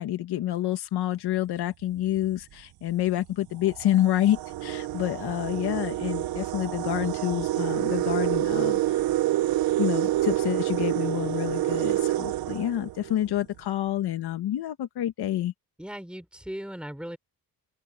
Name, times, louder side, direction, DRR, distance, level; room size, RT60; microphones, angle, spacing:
voice 1, 0.0-9.0 9.8-15.5, left 13 dB, 90° left, 1.9 m, -28 dB
sound 1, 2.0-2.2 3.1-3.2 3.6-13.4, right 14 dB, 65° right, 0.6 m, -27 dB
voice 2, 15.8-17.2, equal, 5° right, 5.8 m, -37 dB
open air
cardioid pair, 115°, 38 cm